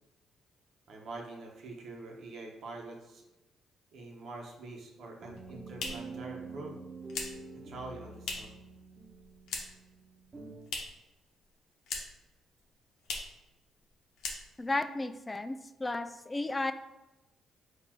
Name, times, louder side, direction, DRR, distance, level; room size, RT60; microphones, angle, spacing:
voice 1, 0.9-3.3 3.9-6.8 7.5-8.6, right 2 dB, 65° right, 1 dB, 1.0 m, -45 dB
sound 1, 4.6-10.6, right 3 dB, 40° right, 1.0 m, -47 dB
sound 2, 5.2-8.7 8.9-9.9 10.2-11.1 11.4-12.3 12.6-12.7 13.0-13.4 13.8-13.9 14.2-14.8, left 4 dB, 80° left, 0.8 m, -40 dB
voice 2, 14.6-16.7, left 2 dB, 20° left, 11 dB, 0.3 m, -33 dB
4.2 x 2.6 x 4.5 m, 1.0 s
cardioid pair, 90°, 0 cm